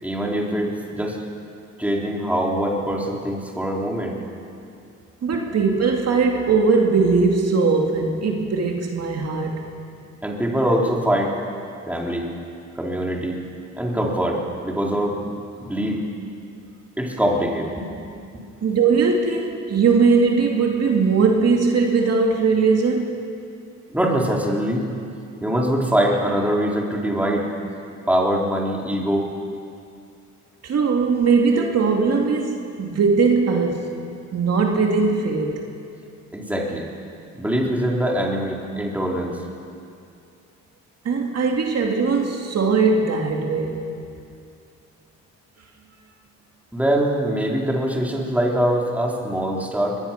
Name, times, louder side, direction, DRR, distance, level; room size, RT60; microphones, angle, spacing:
voice 1, 0.0-1.2 1.8-4.2 5.3-5.4 10.2-11.4 11.9-12.3 12.8-13.4 13.7-15.3 15.6-16.0 17.0-17.9 18.3-18.4 23.9-24.8 25.4-27.5 28.1-29.3 36.3-36.9 37.4-39.4 46.7-50.0, equal, 5° right, -2 dB, 4.0 m, -23 dB
voice 2, 5.2-9.6 18.6-23.2 30.6-33.9 34.3-35.7 41.0-43.8, right 4 dB, 55° right, 1 dB, 2.5 m, -20 dB
22.5 x 21.5 x 5.9 m, 2.5 s
cardioid pair, 90°, 30 cm